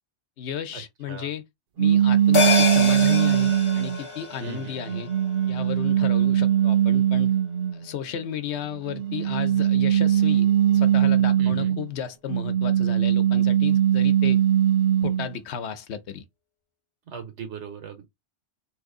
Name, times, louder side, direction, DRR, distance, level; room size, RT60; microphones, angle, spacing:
voice 1, 0.4-1.4 1.8-5.1 5.5-7.3 7.7-14.4 15.0-16.2, left 8 dB, 75° left, 1.0 m, -34 dB
sound 1, 1.8-4.0 4.6-7.7 8.9-11.8 12.3-15.3, right 10 dB, 60° right, 0.8 m, -20 dB
sound 2, 2.3-7.1 7.4-7.5, left 4 dB, 35° left, 0.6 m, -28 dB
voice 2, 4.4-4.8 11.4-11.8 17.1-18.1, right 6 dB, 80° right, 1.3 m, -38 dB
3.0 x 2.6 x 3.6 m
omnidirectional pair, 1.2 m